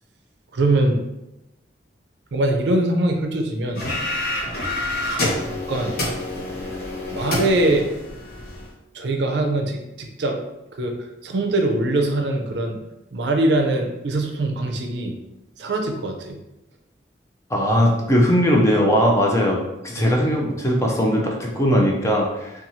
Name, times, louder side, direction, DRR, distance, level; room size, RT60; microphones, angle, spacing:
voice 1, 0.5-1.0 2.3-3.8 5.0-5.3 5.7-6.0 7.1-7.9 8.9-10.4 10.8-10.9 11.2-12.8 13.1-15.1 15.6-16.4 20.0-20.1, right 2 dB, 75° right, 3 dB, 0.4 m, -22 dB
sound 1, 3.8-8.7, left 1 dB, 55° left, 0.7 m, -27 dB
voice 2, 17.5-22.5, equal, 15° left, -1 dB, 0.4 m, -19 dB
2.9 x 2.3 x 2.6 m, 0.92 s
head